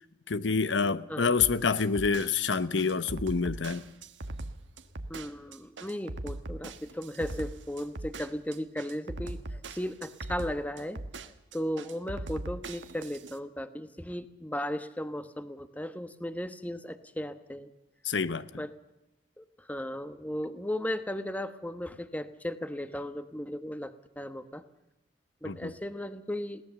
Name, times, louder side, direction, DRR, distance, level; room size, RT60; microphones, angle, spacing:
voice 1, 0.3-3.8 18.0-18.5 25.4-25.7, left 5 dB, 85° left, 0.9 m, -27 dB
sound 1, 1.4-13.4, right 2 dB, 85° right, 1.4 m, -40 dB
voice 2, 5.1-17.7 18.5-18.7 19.4-24.6 25.4-26.6, equal, 10° left, 1.1 m, -36 dB
21.5 x 18.0 x 7.1 m
head